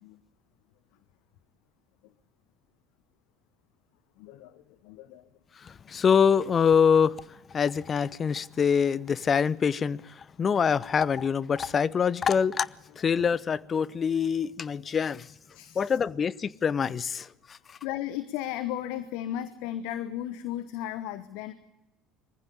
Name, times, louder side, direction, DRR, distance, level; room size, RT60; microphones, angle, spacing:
voice 1, 4.2-5.2 15.5-15.8 17.8-21.5, left 12 dB, 65° left, 1.0 m, -35 dB
voice 2, 5.6-7.2 7.5-12.7 13.0-15.3 15.8-17.6, left 6 dB, 35° left, 0.7 m, -25 dB
23.0 x 15.0 x 8.4 m
figure-of-eight pair, 65°, 0 cm